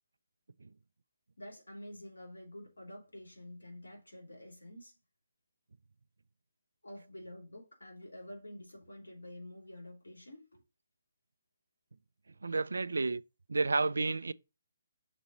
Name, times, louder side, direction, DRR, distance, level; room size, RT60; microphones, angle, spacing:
voice 1, 1.4-5.0 6.8-10.6, left 1 dB, 90° left, 3.2 m, -49 dB
voice 2, 12.4-13.2 13.5-14.3, right 3 dB, 80° right, 0.4 m, -31 dB
6.1 x 4.0 x 5.2 m
hypercardioid pair, 145°, 0 cm